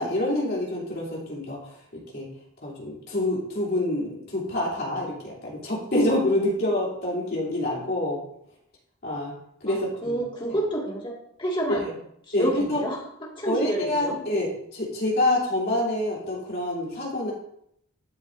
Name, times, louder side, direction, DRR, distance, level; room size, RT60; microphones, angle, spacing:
voice 1, 0.0-1.6 1.9-2.3 2.6-8.2 9.0-9.3 9.6-10.2 11.7-11.9 12.3-12.8 13.4-17.3, left 1 dB, 45° left, -4 dB, 3.1 m, -27 dB
voice 2, 9.7-12.0 12.3-13.0 13.4-14.2, right 1 dB, 20° left, -3 dB, 1.9 m, -29 dB
12.0 x 7.5 x 2.6 m, 0.73 s
head